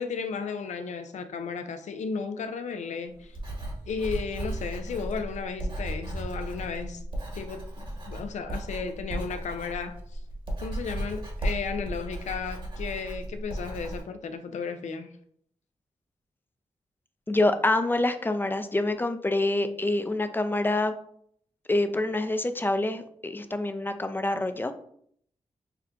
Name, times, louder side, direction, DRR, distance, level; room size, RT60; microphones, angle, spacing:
voice 1, 0.0-3.4 3.9-7.0 7.3-10.2 10.6-15.1, left 5 dB, 75° left, 8 dB, 0.5 m, -34 dB
Writing, 3.2-14.0, right 1 dB, 45° right, 1.3 m, -35 dB
voice 2, 17.3-20.9 21.7-24.7, left 2 dB, 15° left, 8 dB, 0.4 m, -26 dB
5.7 x 2.2 x 2.5 m, 0.65 s
supercardioid pair, 40°, 12 cm